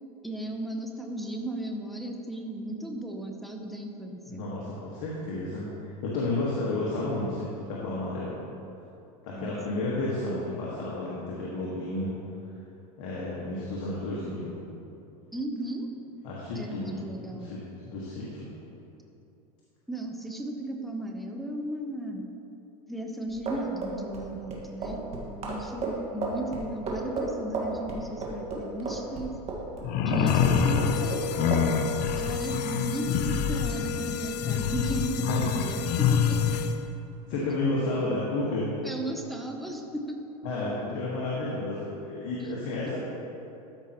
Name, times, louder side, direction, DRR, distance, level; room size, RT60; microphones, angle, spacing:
voice 1, 0.2-4.4 9.4-9.5 15.3-15.9 16.5-17.5 19.9-22.2 22.9-29.3 30.1-31.2 32.2-36.4 38.8-40.2, right 1 dB, ahead, 1 dB, 0.7 m, -35 dB
voice 2, 4.3-8.4 9.2-12.1 13.0-14.5 16.2-17.6 17.8-18.5 35.3-35.4 37.3-38.7 40.4-43.0, left 2 dB, 60° left, -6 dB, 1.6 m, -31 dB
sound 1, 23.3-29.8 30.1-31.2 31.5-31.7, right 3 dB, 30° right, 1.6 m, -33 dB
sound 2, 29.8-36.6, left 7 dB, 45° left, 0.6 m, -26 dB
sound 3, 30.3-37.0, left 7 dB, 90° left, 0.4 m, -35 dB
13.0 x 5.5 x 3.0 m, 2.8 s
supercardioid pair, 120°, 20 cm